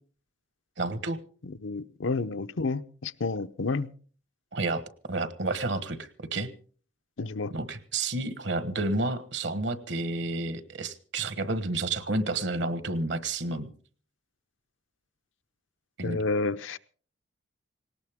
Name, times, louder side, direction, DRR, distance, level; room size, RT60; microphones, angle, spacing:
voice 1, 0.8-1.2 4.5-6.5 7.5-13.7 16.0-16.2, right 2 dB, 70° right, 13 dB, 1.3 m, -30 dB
voice 2, 1.6-3.9 7.2-7.5 16.0-16.8, left 3 dB, 85° left, 11 dB, 0.7 m, -30 dB
19.0 x 18.0 x 3.6 m, 0.42 s
head